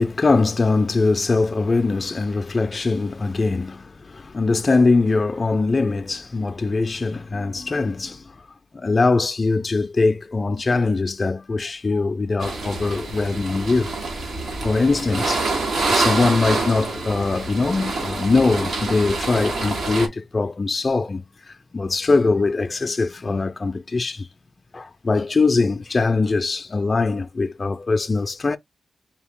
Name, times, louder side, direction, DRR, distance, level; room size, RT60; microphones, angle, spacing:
voice 1, 0.0-8.5 8.7-13.9 14.6-15.5 15.9-24.3 24.7-28.6, left 3 dB, 30° left, 0.4 m, -22 dB
sound 1, 12.4-20.1, right 3 dB, 75° right, 1.7 m, -26 dB
4.5 x 2.8 x 3.5 m
wide cardioid pair, 105°, 0 cm